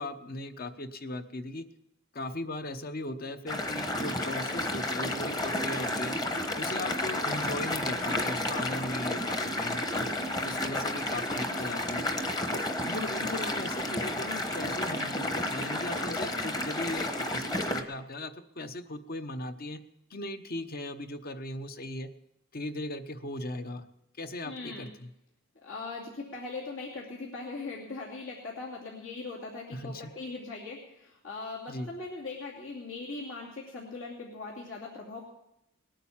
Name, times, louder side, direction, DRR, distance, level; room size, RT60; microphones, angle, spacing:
voice 1, 0.0-1.7 2.1-6.1 6.5-10.1 10.4-12.0 12.5-19.8 20.1-22.1 22.5-23.9 24.2-25.1 29.7-30.1 31.7-31.9, left 1 dB, 45° left, 9 dB, 0.9 m, -38 dB
sound 1, 3.5-17.8, left 1 dB, 20° left, 1.1 m, -31 dB
voice 2, 24.4-24.9 25.6-35.3, left 3 dB, 75° left, -3 dB, 2.7 m, -40 dB
19.5 x 9.0 x 7.2 m, 0.84 s
head